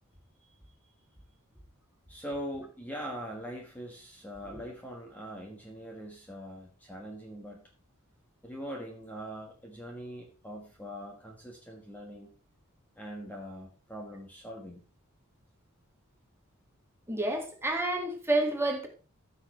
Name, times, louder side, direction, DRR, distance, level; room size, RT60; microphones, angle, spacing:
voice 1, 2.1-7.6 8.4-12.3 13.0-14.8, equal, 5° left, 1.3 m, -42 dB
voice 2, 17.1-18.9, right 2 dB, 10° right, 1.9 m, -29 dB
14.5 x 6.6 x 3.1 m
head